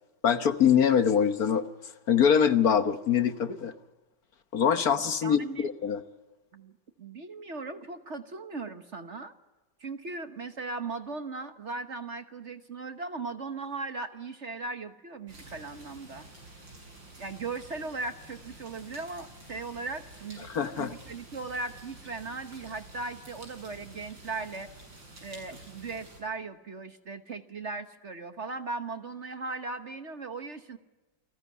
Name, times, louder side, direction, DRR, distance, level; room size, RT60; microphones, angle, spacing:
voice 1, 0.2-1.7 2.1-3.7 4.5-6.0 20.5-20.9, left 8 dB, 55° left, 11 dB, 1.4 m, -24 dB
voice 2, 5.2-5.7 6.5-6.7 7.0-9.3 9.8-16.3 17.2-24.7 25.2-30.8, right 3 dB, 45° right, 9 dB, 1.3 m, -38 dB
sound 1, 15.3-26.2, right 2 dB, 75° right, 7.8 m, -50 dB
29.0 x 19.5 x 9.6 m, 1.2 s
omnidirectional pair, 2.0 m